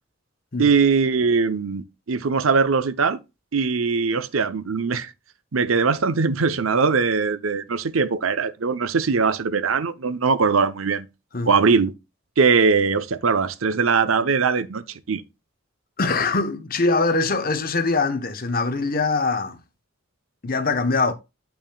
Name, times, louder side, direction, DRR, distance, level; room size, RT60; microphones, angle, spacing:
voice 1, 0.6-3.2 3.5-5.1 5.5-11.1 11.5-11.9 12.4-15.2, right 5 dB, 85° right, 0.7 m, -21 dB
voice 2, 16.0-19.6 20.4-21.1, left 3 dB, 45° left, 0.9 m, -23 dB
8.6 x 6.0 x 2.3 m
head